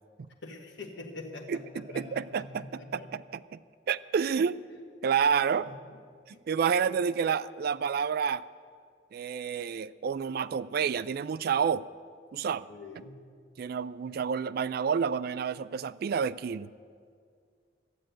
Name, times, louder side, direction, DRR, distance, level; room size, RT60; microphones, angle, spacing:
voice 1, 0.4-3.1 5.5-5.7 6.5-6.6 12.7-13.2, left 2 dB, 75° left, 0 dB, 1.5 m, -44 dB
voice 2, 1.9-3.6 3.9-4.6 5.0-5.7 6.3-8.4 9.1-11.8 12.3-12.7 13.6-16.7, right 6 dB, 55° right, 16 dB, 0.3 m, -29 dB
13.0 x 7.6 x 9.1 m, 2.1 s
head